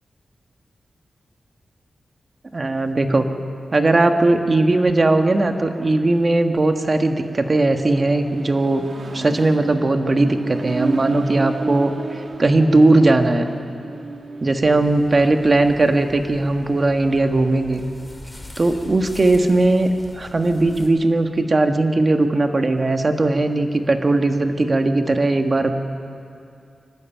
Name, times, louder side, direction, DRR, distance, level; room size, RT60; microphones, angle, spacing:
voice 1, 2.5-3.3 3.7-8.9 9.1-11.9 12.4-13.5 14.4-17.8 18.6-25.7, right 2 dB, 40° right, 6 dB, 1.6 m, -18 dB
Accelerating revving vroom, 5.7-16.0, right 3 dB, 60° right, 1.6 m, -33 dB
sound 1, 14.6-20.9, left 1 dB, 15° left, 3.1 m, -42 dB
24.0 x 12.0 x 9.1 m, 2.5 s
cardioid pair, 65°, 0 cm